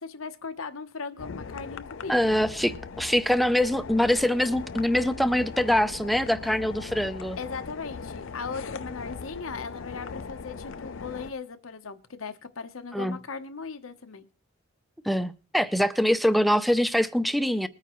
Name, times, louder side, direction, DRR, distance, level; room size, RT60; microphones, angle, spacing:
voice 1, 0.0-2.3 7.4-14.3, left 4 dB, 85° left, 1.0 m, -38 dB
sound 1, 1.2-11.3, left 5 dB, 65° left, 0.5 m, -39 dB
voice 2, 2.1-7.4 12.9-13.2 15.0-17.7, equal, ahead, 0.5 m, -24 dB
21.0 x 9.1 x 3.1 m
head